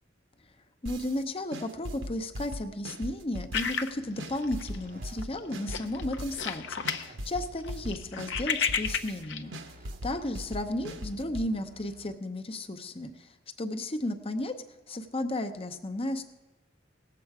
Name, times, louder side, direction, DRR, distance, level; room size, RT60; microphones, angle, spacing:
voice 1, 0.8-9.5 10.0-14.5 14.9-16.2, left 1 dB, 30° left, 8 dB, 0.7 m, -34 dB
sound 1, 0.9-1.2 1.5-3.9 4.2-6.6 6.9-9.2 9.5-11.5, equal, 80° right, 1.0 m, -39 dB
sound 2, 3.5-4.9 5.2-5.4 5.7-7.1 7.4-9.4, left 7 dB, 65° left, 0.6 m, -32 dB
sound 3, 3.9-12.2, right 1 dB, 45° right, 0.7 m, -53 dB
18.5 x 7.6 x 4.8 m, 1.1 s
head